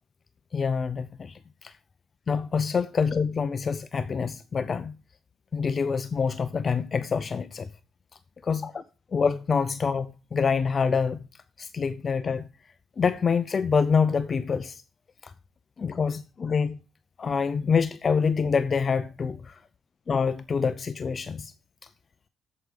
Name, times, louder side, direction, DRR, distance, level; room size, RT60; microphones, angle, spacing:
voice 1, 0.5-1.7 2.3-4.9 5.5-7.7 8.4-8.8 9.1-11.2 11.6-12.5 13.0-14.8 15.2-15.3 15.8-16.8 17.2-19.6 20.1-21.5, left 5 dB, 40° left, 0.6 m, -26 dB
8.5 x 7.9 x 4.9 m
cardioid pair, 90°, 0 cm